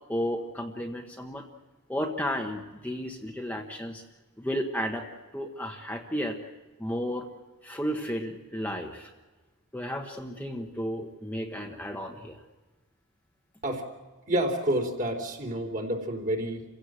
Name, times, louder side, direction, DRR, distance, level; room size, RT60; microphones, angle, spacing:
voice 1, 0.1-1.5 1.9-4.0 4.4-5.1 5.3-6.4 6.8-7.3 7.6-9.1 9.7-12.4, equal, 5° left, 1 dB, 1.2 m, -33 dB
voice 2, 14.3-16.7, right 1 dB, 40° right, 2 dB, 3.7 m, -29 dB
28.5 x 16.5 x 7.7 m, 1.3 s
head